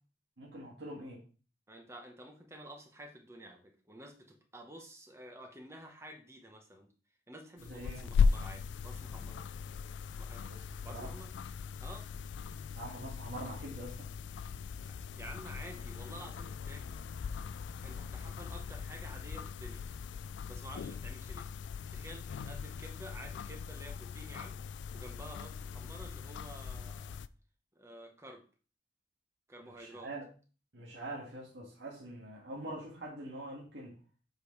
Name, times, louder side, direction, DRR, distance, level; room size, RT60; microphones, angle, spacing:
voice 1, 0.4-1.2 7.6-8.1 10.4-10.6 10.9-11.1 12.7-14.1 29.6-30.2 30.7-34.0, right 1 dB, 80° right, -4 dB, 1.7 m, -44 dB
voice 2, 1.7-6.9 7.3-9.4 10.2-10.4 10.8-11.3 11.8-12.1 14.9-16.8 17.8-19.8 20.5-21.5 21.9-24.6 24.9-27.2 27.7-28.4 29.5-30.1, right 1 dB, 15° right, 3 dB, 1.0 m, -50 dB
sound 1, 7.6-27.3, left 5 dB, 85° left, 0.3 m, -38 dB
7.8 x 5.0 x 3.2 m, 0.37 s
head